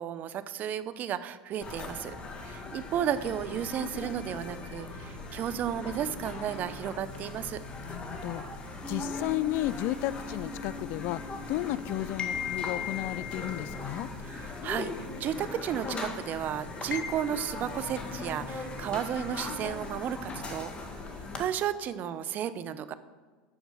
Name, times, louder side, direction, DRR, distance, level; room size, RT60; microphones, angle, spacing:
voice 1, 0.0-2.1 2.4-7.6 14.2-21.0 21.4-22.9, right 9 dB, 45° right, 14 dB, 0.7 m, -33 dB
sound 1, 1.6-21.4, left 4 dB, 25° left, 1.6 m, -39 dB
voice 2, 7.9-8.4 8.9-14.1, left 16 dB, 65° left, 18 dB, 0.4 m, -33 dB
Piano, 8.8-16.0, left 2 dB, 15° right, 2.8 m, -44 dB
13.0 x 4.6 x 6.8 m, 1.4 s
supercardioid pair, 100°, 4 cm